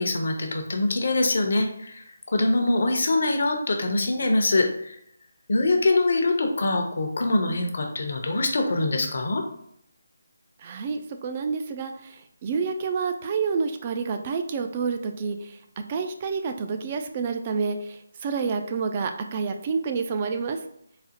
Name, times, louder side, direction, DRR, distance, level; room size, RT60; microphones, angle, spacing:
voice 1, 0.0-2.0 2.3-5.0 5.5-9.4, left 2 dB, 60° left, 4 dB, 0.7 m, -24 dB
voice 2, 10.6-15.6 15.9-20.6, right 5 dB, 30° right, 6 dB, 0.3 m, -28 dB
4.0 x 2.0 x 2.8 m, 0.72 s
figure-of-eight pair, 155°, 0 cm